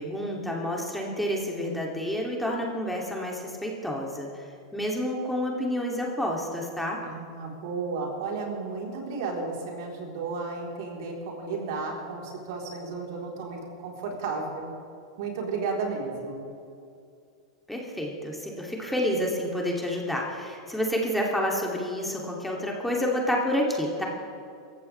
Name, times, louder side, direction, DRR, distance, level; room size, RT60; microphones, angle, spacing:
voice 1, 0.0-7.0 17.7-24.0, equal, 5° left, -2 dB, 2.8 m, -29 dB
voice 2, 7.0-14.7 15.2-16.5, right 4 dB, 60° right, -1 dB, 4.0 m, -33 dB
27.0 x 15.0 x 3.4 m, 2.5 s
figure-of-eight pair, 95°, 2 cm